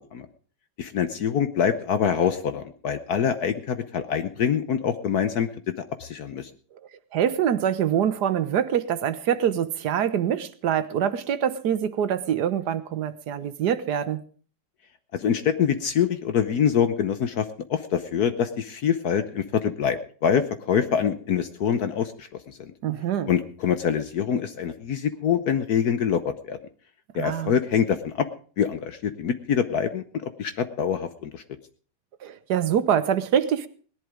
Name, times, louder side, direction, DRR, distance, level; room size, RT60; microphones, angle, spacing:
voice 1, 0.8-5.5 5.8-6.5 15.1-22.7 23.3-26.6 27.1-28.3 28.6-31.4, left 8 dB, 60° left, 10 dB, 1.2 m, -25 dB
voice 2, 7.1-14.2 22.8-23.3 27.1-27.5 32.2-33.7, right 9 dB, 60° right, 13 dB, 1.3 m, -25 dB
18.0 x 11.0 x 5.0 m, 0.43 s
omnidirectional pair, 2.1 m